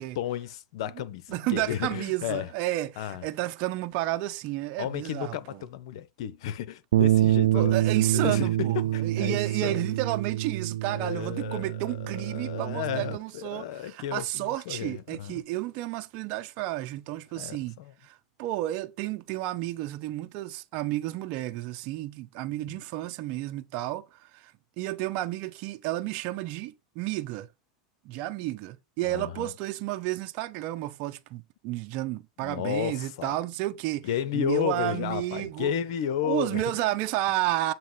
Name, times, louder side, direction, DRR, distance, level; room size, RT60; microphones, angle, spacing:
voice 1, 0.0-2.5 3.0-3.3 4.8-7.8 8.1-10.0 10.8-15.4 17.3-17.9 22.7-22.8 29.0-29.5 32.4-33.3 34.0-36.9, left 10 dB, 75° left, 0.7 m, -33 dB
voice 2, 1.3-5.4 7.5-17.7 18.0-27.5 28.0-35.7 36.2-37.7, right 16 dB, 55° right, 0.9 m, -31 dB
sound 1, 6.9-13.2, right 13 dB, 85° right, 0.3 m, -26 dB
7.7 x 2.8 x 5.5 m
supercardioid pair, 115°, 3 cm